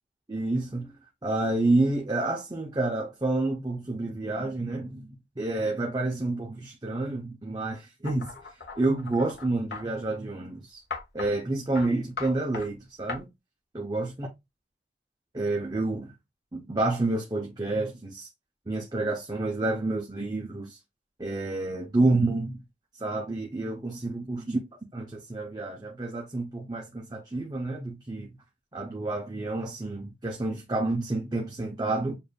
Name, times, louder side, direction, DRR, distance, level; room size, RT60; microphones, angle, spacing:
voice 1, 0.3-10.8 11.1-13.3 13.7-14.3 15.3-16.1 16.5-18.3 18.7-20.8 21.2-22.6 23.0-24.6 24.9-28.3 28.7-32.1, right 2 dB, 25° right, 0.6 m, -29 dB
sound 1, 8.0-9.9 10.9-11.3 11.8-11.9 12.2-12.7 13.1-13.2, left 4 dB, 70° left, 1.1 m, -37 dB
6.7 x 2.6 x 2.2 m
head